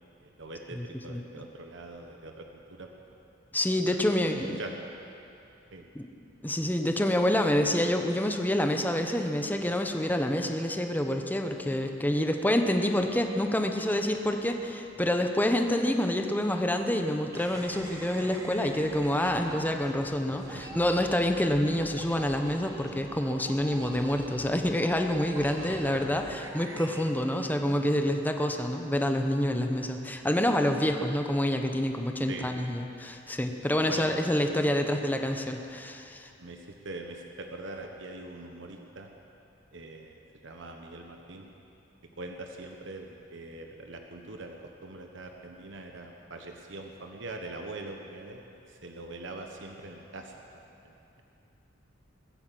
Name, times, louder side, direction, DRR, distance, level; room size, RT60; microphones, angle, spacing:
voice 1, 0.2-2.9 3.9-4.7 5.7-5.9 20.3-20.6 25.6-26.2 32.3-32.5 33.9-34.6 36.4-39.1 39.7-41.5 42.2-51.2, right 2 dB, 70° right, 3 dB, 1.2 m, -43 dB
voice 2, 0.8-1.2 3.5-4.6 5.9-6.1 6.4-26.2 26.5-36.3, left 1 dB, 10° left, 5 dB, 0.9 m, -27 dB
sound 1, 17.3-28.0, right 1 dB, 15° right, 1.5 m, -45 dB
20.5 x 8.7 x 7.6 m, 2.7 s
head